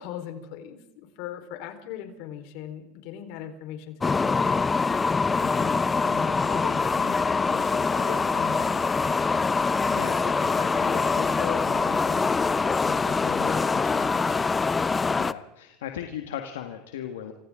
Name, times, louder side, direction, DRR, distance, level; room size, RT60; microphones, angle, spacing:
voice 1, 0.0-4.6 5.4-8.9 9.7-10.0 10.4-12.3 12.8-14.5, left 10 dB, 65° left, 6 dB, 4.3 m, -39 dB
sound 1, 4.0-15.3, left 4 dB, 20° left, 0.8 m, -24 dB
voice 2, 15.2-17.3, left 10 dB, 80° left, 5 dB, 1.7 m, -36 dB
30.0 x 26.0 x 3.8 m, 0.97 s
hypercardioid pair, 95°, 0 cm